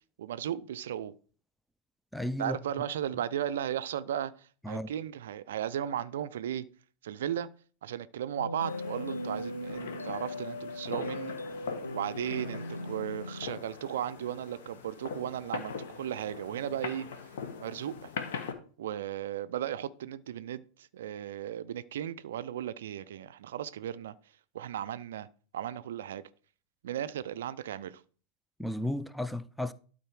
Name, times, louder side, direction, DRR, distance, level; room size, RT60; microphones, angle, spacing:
voice 1, 0.2-1.1 2.4-6.6 7.0-7.5 7.8-11.4 11.9-17.1 17.6-18.1 18.8-24.1 24.5-25.3 25.5-26.2 26.8-28.0, right 10 dB, 60° right, 0.4 m, -36 dB
voice 2, 2.1-2.6 4.6-4.9 28.6-29.7, left 1 dB, ahead, 0.4 m, -33 dB
sound 1, 8.4-13.6, left 1 dB, 85° left, 0.5 m, -39 dB
sound 2, 8.6-18.5, left 6 dB, 60° left, 1.2 m, -42 dB
12.0 x 4.2 x 4.7 m
figure-of-eight pair, 90°, 0 cm